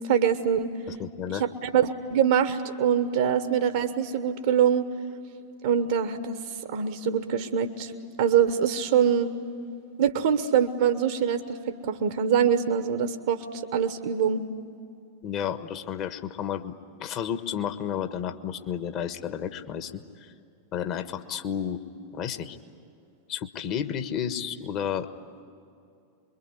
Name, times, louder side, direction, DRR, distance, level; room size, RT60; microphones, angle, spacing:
voice 1, 0.0-0.7 1.3-1.5 1.7-4.9 5.6-6.4 6.7-7.9 8.2-9.3 10.0-11.4 11.7-14.4, right 8 dB, 55° right, 10 dB, 1.1 m, -24 dB
voice 2, 0.9-1.4 15.2-16.7 17.0-20.3 20.7-21.8 22.1-22.6 23.3-25.1, left 9 dB, 35° left, 9 dB, 1.4 m, -32 dB
25.5 x 23.0 x 9.8 m, 2.6 s
figure-of-eight pair, 90°, 0 cm